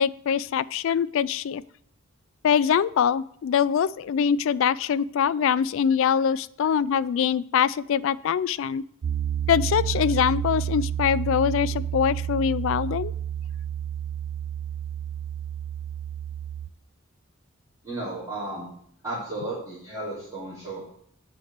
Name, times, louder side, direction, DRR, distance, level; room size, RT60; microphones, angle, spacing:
voice 1, 0.0-1.6 2.4-8.8 9.5-13.1, left 7 dB, 65° left, 18 dB, 0.3 m, -23 dB
Piano, 9.0-16.7, right 10 dB, 60° right, 0.5 m, -30 dB
voice 2, 17.8-18.7 19.0-20.8, right 2 dB, 15° right, -9 dB, 2.7 m, -33 dB
8.1 x 4.2 x 6.5 m, 0.67 s
head